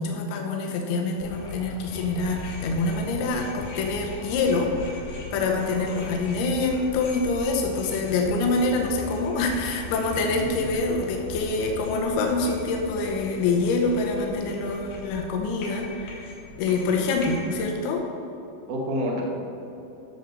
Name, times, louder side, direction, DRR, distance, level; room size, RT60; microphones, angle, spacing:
voice 1, 0.0-16.3 16.6-18.0, left 3 dB, 85° left, 1 dB, 2.2 m, -26 dB
sound 1, 1.2-17.7, left 4 dB, 70° left, 2.7 m, -40 dB
voice 2, 5.3-5.9 16.7-17.1 18.7-19.2, equal, 70° right, -1 dB, 1.9 m, -31 dB
13.5 x 6.9 x 4.0 m, 2.8 s
omnidirectional pair, 5.7 m